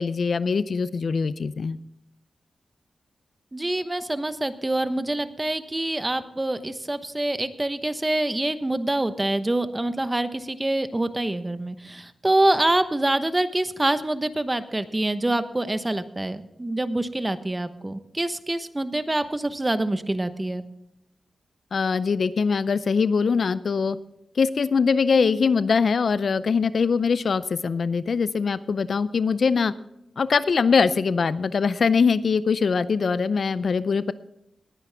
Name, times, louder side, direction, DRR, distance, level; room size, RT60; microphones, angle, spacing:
voice 1, 0.0-1.8 21.7-24.0 24.4-29.7 30.2-34.1, left 5 dB, 65° left, 16 dB, 0.5 m, -22 dB
voice 2, 3.5-20.6, right 1 dB, 20° right, 11 dB, 1.0 m, -26 dB
19.5 x 9.6 x 3.5 m, 0.82 s
cardioid pair, 60°, 0 cm